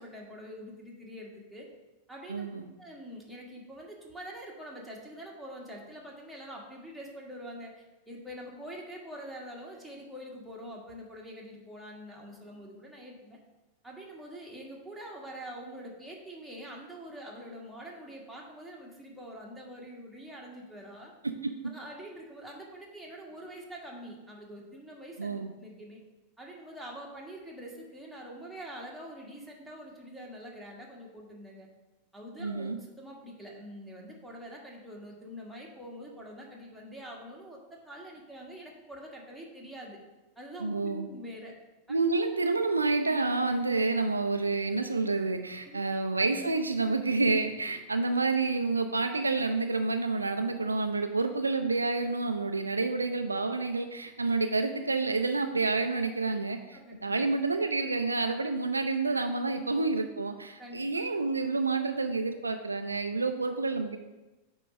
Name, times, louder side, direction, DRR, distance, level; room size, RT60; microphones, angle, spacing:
voice 1, 0.0-1.7 2.1-2.5 2.8-13.4 13.8-21.1 21.6-26.0 26.4-31.7 32.1-40.0 40.3-41.5 45.6-45.8 56.7-57.0 60.6-61.0, equal, ahead, -3 dB, 1.6 m, -45 dB
voice 2, 2.3-2.7 21.2-21.5 25.2-25.5 32.4-32.8 40.6-41.1 41.9-64.0, right 3 dB, 80° right, 6 dB, 0.4 m, -29 dB
8.5 x 3.0 x 5.3 m, 1.1 s
figure-of-eight pair, 90°, 0 cm